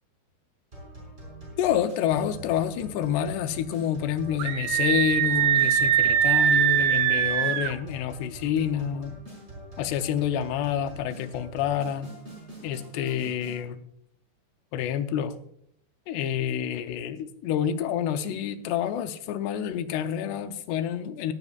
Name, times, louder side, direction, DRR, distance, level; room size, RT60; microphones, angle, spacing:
sound 1, 0.7-13.6, right 1 dB, 15° right, 5.7 m, -44 dB
voice 1, 1.6-9.1 9.8-12.1 12.6-13.8 14.7-15.4 16.1-21.3, left 9 dB, 85° left, 9 dB, 2.9 m, -28 dB
Screaming, 4.4-7.8, right 10 dB, 80° right, 2.6 m, -22 dB
18.0 x 11.5 x 2.4 m, 0.70 s
omnidirectional pair, 4.7 m